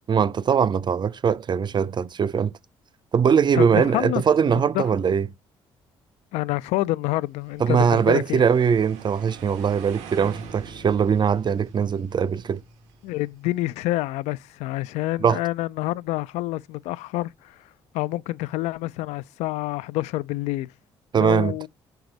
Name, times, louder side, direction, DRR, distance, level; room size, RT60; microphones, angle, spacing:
voice 1, 0.1-2.5 3.1-5.3 7.6-12.6 15.2-15.4 21.1-21.7, right 7 dB, 40° right, 0.5 m, -21 dB
voice 2, 3.6-4.8 6.3-8.4 13.0-17.7 17.9-20.7 21.1-21.7, left 17 dB, 75° left, 0.4 m, -27 dB
sound 1, 7.4-13.6, right 5 dB, 80° right, 1.1 m, -44 dB
4.6 x 3.9 x 5.2 m
hypercardioid pair, 55°, 12 cm